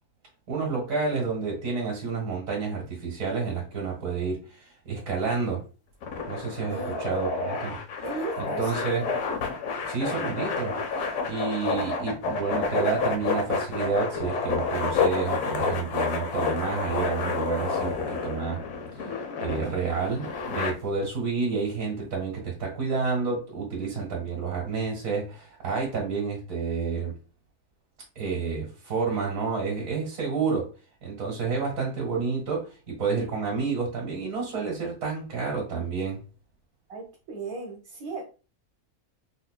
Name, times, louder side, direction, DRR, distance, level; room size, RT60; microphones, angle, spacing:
voice 1, 0.5-5.6 6.3-7.8 8.4-9.1 9.9-18.6 19.4-27.2 28.2-30.7 31.0-36.2, right 4 dB, 65° right, 1.8 m, -29 dB
sound 1, 6.0-20.7, left 4 dB, 70° left, 1.1 m, -29 dB
voice 2, 6.7-7.0 8.0-9.1 36.9-38.2, right 3 dB, 80° right, 1.3 m, -36 dB
4.9 x 2.5 x 2.2 m
omnidirectional pair, 1.5 m